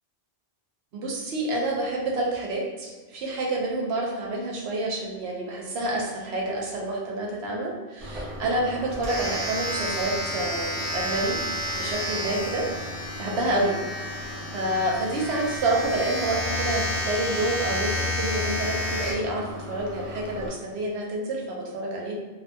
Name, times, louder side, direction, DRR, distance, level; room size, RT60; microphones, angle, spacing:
voice 1, 0.9-11.4 11.7-13.8 14.5-22.1, right 2 dB, 85° right, -2 dB, 0.9 m, -28 dB
Domestic sounds home sounds, 8.0-20.5, left 1 dB, 40° right, 0.6 m, -31 dB
2.6 x 2.1 x 2.6 m, 1.3 s
omnidirectional pair, 1.0 m